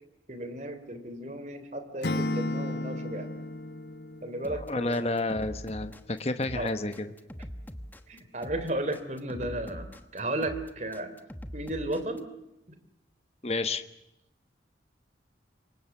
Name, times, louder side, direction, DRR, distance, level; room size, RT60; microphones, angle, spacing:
voice 1, 0.3-3.3 4.2-5.1 6.5-6.7 8.1-11.2 11.5-12.2 12.7-12.8, right 1 dB, 40° right, 9 dB, 3.4 m, -34 dB
Acoustic guitar / Strum, 2.0-5.1, left 1 dB, 65° left, 1.5 m, -33 dB
sound 1, 4.4-12.2, equal, 10° left, 1.2 m, -42 dB
voice 2, 4.5-7.1 13.4-13.8, left 2 dB, 35° left, 9 dB, 1.1 m, -30 dB
28.0 x 24.0 x 7.2 m, 0.86 s
head